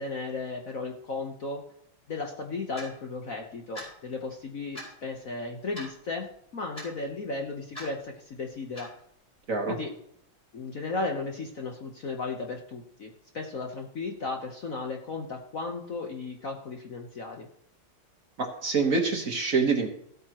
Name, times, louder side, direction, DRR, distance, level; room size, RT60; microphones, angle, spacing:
voice 1, 0.0-1.6 2.1-8.9 9.7-9.9 10.5-17.5, left 3 dB, 50° left, 2 dB, 1.1 m, -35 dB
Clock, 2.8-2.9 3.8-3.9 4.8-4.9 5.8-5.9 6.8-6.9 7.8-7.9 8.8-8.9, equal, 15° left, 5.5 m, -40 dB
voice 2, 18.4-19.9, right 4 dB, 45° right, 3 dB, 1.5 m, -26 dB
16.0 x 8.7 x 3.0 m, 0.70 s
omnidirectional pair, 2.4 m